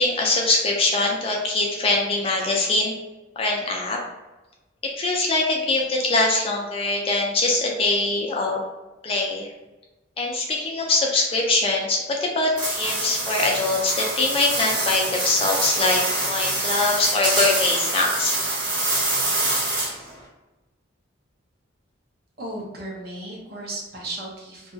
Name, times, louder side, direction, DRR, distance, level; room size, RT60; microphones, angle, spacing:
voice 1, 0.0-2.9 3.4-4.0 4.8-8.6 9.0-9.5 10.2-18.4, left 2 dB, 30° left, 0 dB, 0.4 m, -23 dB
sound 1, 12.6-20.1, right 2 dB, 80° right, 1.2 m, -25 dB
voice 2, 22.4-24.7, right 1 dB, 50° right, -2 dB, 0.7 m, -35 dB
2.8 x 2.3 x 2.6 m, 1.1 s
head